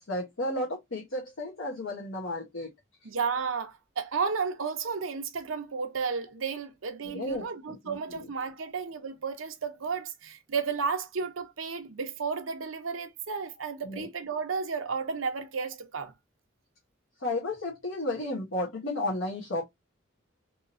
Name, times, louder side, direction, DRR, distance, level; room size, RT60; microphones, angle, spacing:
voice 1, 0.0-2.7 7.0-8.3 13.8-14.1 17.2-19.6, left 1 dB, 85° left, 1.2 m, -33 dB
voice 2, 3.0-16.1, right 5 dB, 90° right, 0.8 m, -33 dB
3.6 x 2.8 x 2.6 m
head